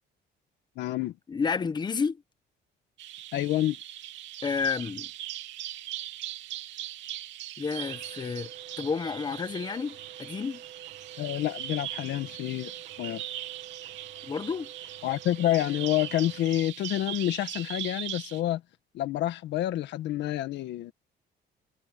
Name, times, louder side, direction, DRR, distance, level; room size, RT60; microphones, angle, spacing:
voice 1, 0.8-1.1 3.3-3.8 11.2-12.7 13.0-13.2 15.0-18.6 18.9-20.9, left 14 dB, 70° left, 1.6 m, -28 dB
voice 2, 1.3-2.2 4.4-5.1 7.6-8.5 8.8-10.6 14.2-14.7, left 5 dB, 20° left, 1.2 m, -30 dB
Bird vocalization bird call bird song, 3.0-18.4, right 13 dB, 75° right, 3.0 m, -40 dB
sound 1, 7.8-16.5, right 10 dB, 50° right, 2.0 m, -49 dB
cardioid pair, 165°, 19 cm